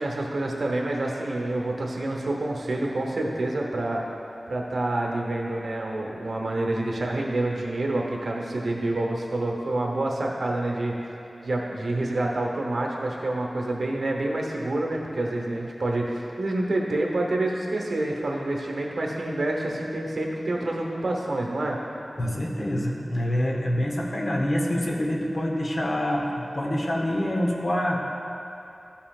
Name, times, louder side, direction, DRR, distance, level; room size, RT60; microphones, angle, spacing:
voice 1, 0.0-4.0 4.5-10.9 11.4-21.8, right 2 dB, 80° right, -1 dB, 1.0 m, -27 dB
voice 2, 22.2-28.0, equal, 50° left, -1 dB, 1.0 m, -26 dB
13.5 x 5.6 x 2.4 m, 2.8 s
wide cardioid pair, 85°, 0 cm